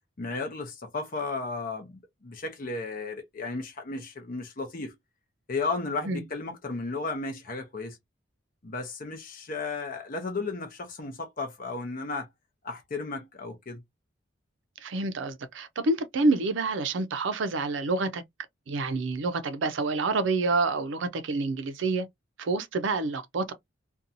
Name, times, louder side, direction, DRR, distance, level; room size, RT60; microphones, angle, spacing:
voice 1, 0.2-4.9 5.5-8.0 8.6-12.3 12.6-13.8, left 3 dB, 45° left, 0.7 m, -34 dB
voice 2, 14.8-18.2 18.7-22.1 22.4-23.5, right 3 dB, 70° right, 0.5 m, -28 dB
2.6 x 2.3 x 2.7 m
head